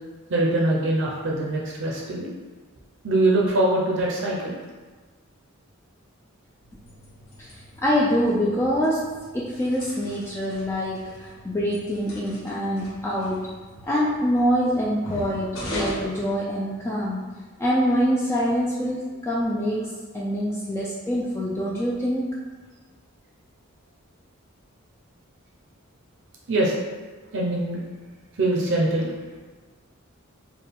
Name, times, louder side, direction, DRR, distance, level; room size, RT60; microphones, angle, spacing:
voice 1, 0.3-2.3 3.0-4.6 26.5-26.8 27.3-27.8 28.4-29.1, right 1 dB, 60° right, -3 dB, 0.6 m, -23 dB
sound 1, 6.6-17.1, equal, 70° left, 1.2 m, -40 dB
voice 2, 7.4-9.1 9.3-13.5 13.9-17.3 17.6-22.3, equal, 10° left, -5 dB, 0.3 m, -25 dB
4.4 x 2.3 x 3.4 m, 1.4 s
head